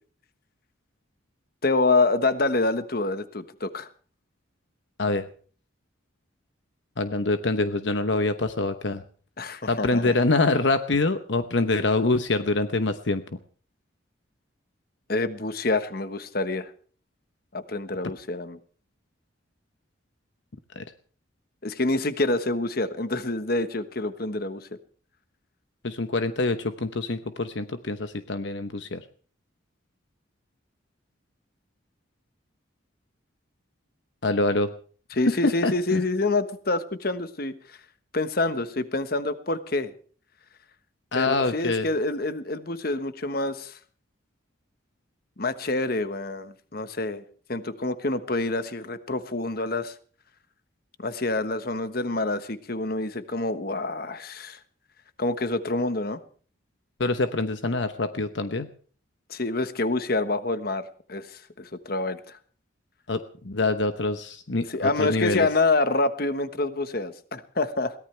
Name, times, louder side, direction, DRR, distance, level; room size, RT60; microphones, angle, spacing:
voice 1, 1.6-3.9 9.4-10.1 15.1-16.7 17.5-18.6 21.6-24.7 35.1-37.8 38.1-39.9 41.1-43.7 45.4-47.2 47.5-49.9 51.0-54.6 55.2-56.2 59.3-62.4 64.7-67.9, left 2 dB, 50° left, 11 dB, 1.3 m, -27 dB
voice 2, 7.0-9.0 9.7-13.2 20.7-20.8 25.8-29.0 34.2-34.7 35.3-35.4 35.6-36.0 41.1-41.9 57.0-58.7 63.1-65.5, left 2 dB, 65° left, 9 dB, 1.0 m, -25 dB
22.5 x 18.0 x 3.3 m, 0.43 s
head